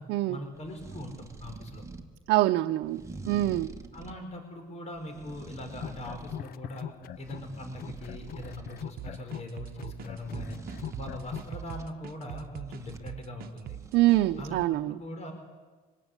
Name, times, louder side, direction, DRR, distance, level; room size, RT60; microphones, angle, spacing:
voice 1, 0.3-1.8 3.9-6.9 7.2-10.6 10.9-13.8 14.4-15.3, left 1 dB, 40° left, 6 dB, 4.9 m, -41 dB
sound 1, 0.5-2.1 2.8-4.2 4.9-6.5 6.9-8.9 10.1-11.9 12.6-13.1 13.6-14.7, right 3 dB, 15° right, 2.1 m, -45 dB
voice 2, 2.3-3.7 13.9-15.0, right 16 dB, 85° right, 7 dB, 0.8 m, -25 dB
sound 2, 5.7-7.5 7.8-11.5, left 10 dB, 60° left, 0.8 m, -41 dB
sound 3, 9.0-14.2, right 12 dB, 65° right, 1.0 m, -42 dB
25.0 x 19.5 x 9.8 m, 1.4 s
cardioid pair, 110°, 17 cm